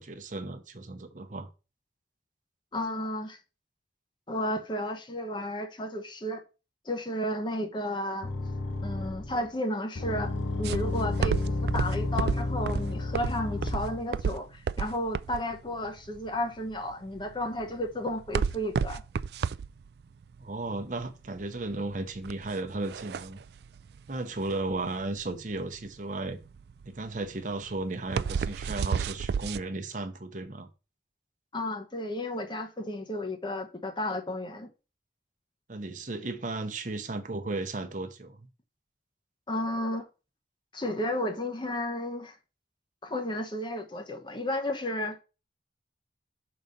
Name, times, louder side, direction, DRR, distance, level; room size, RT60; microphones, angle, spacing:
voice 1, 0.0-1.5 20.4-23.4 24.1-26.4 26.9-30.7 35.7-38.5, right 2 dB, 45° right, 0.8 m, -35 dB
voice 2, 2.7-3.4 4.3-6.4 6.8-8.3 8.8-19.0 31.5-34.7 39.5-40.1 40.7-42.4 43.0-45.2, left 1 dB, 25° left, 0.9 m, -33 dB
sound 1, 8.2-9.4 10.0-14.0, left 2 dB, 90° left, 1.0 m, -31 dB
sound 2, 10.6-29.6, right 6 dB, 60° right, 0.3 m, -32 dB
6.3 x 3.9 x 5.3 m
head